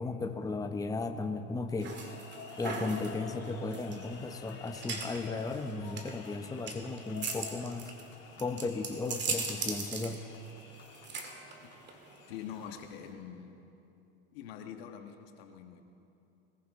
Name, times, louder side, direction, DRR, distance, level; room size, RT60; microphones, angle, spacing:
voice 1, 0.0-2.0 2.6-7.9 8.4-10.2, left 3 dB, 10° left, 6 dB, 0.8 m, -35 dB
sound 1, 1.7-12.8, left 5 dB, 55° left, 2.8 m, -50 dB
sound 2, 1.8-13.1, right 4 dB, 35° right, 2.2 m, -40 dB
voice 2, 12.3-13.6 14.3-15.8, left 8 dB, 80° left, 5 dB, 1.4 m, -44 dB
21.0 x 15.0 x 3.7 m, 2.8 s
supercardioid pair, 95°, 30 cm